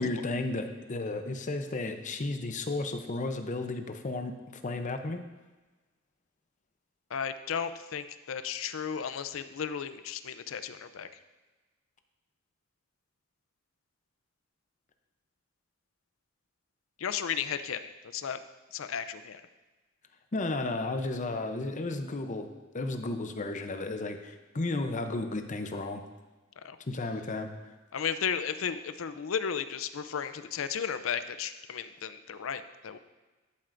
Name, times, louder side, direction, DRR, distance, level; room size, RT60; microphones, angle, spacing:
voice 1, 0.0-5.2 20.3-22.5 22.7-26.0 26.9-27.5, left 2 dB, 40° left, 7 dB, 0.7 m, -33 dB
voice 2, 7.1-11.1 17.0-18.4 18.7-19.4 26.6-26.8 27.9-33.0, left 7 dB, 85° left, 11 dB, 0.5 m, -34 dB
13.0 x 7.5 x 2.6 m, 1.2 s
head